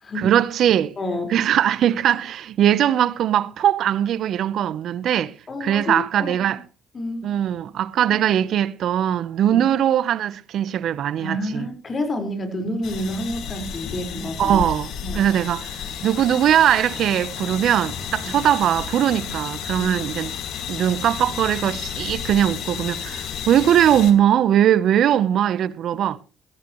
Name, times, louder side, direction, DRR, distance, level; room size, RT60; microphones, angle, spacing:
voice 1, 0.1-1.0 1.3-5.3 5.6-6.6 7.2-11.7 14.4-20.3 20.7-26.2, right 10 dB, 65° right, 0.8 m, -20 dB
voice 2, 1.0-1.3 5.5-6.6 6.9-7.3 8.1-8.2 9.4-9.6 11.2-14.6 15.0-15.2 18.2-18.3 19.8-19.9, left 1 dB, 40° left, 4.8 m, -29 dB
sound 1, 12.8-24.1, left 8 dB, 75° left, 2.2 m, -32 dB
18.0 x 14.0 x 3.1 m
supercardioid pair, 70°, 0 cm